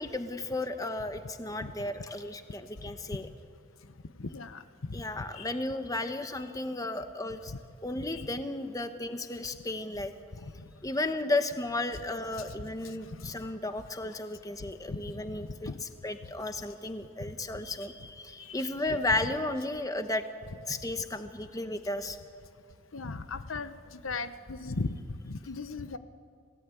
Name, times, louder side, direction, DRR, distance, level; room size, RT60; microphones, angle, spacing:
voice 1, 0.0-3.3 4.9-7.5 7.8-10.1 10.8-20.2 20.7-22.2, left 2 dB, 15° left, 8 dB, 1.0 m, -34 dB
voice 2, 4.2-5.5 8.1-8.3 13.1-13.4 14.9-15.4 15.6-15.8 18.4-18.6 22.9-26.0, left 3 dB, 80° left, 11 dB, 0.9 m, -38 dB
27.0 x 17.5 x 8.4 m, 2.3 s
head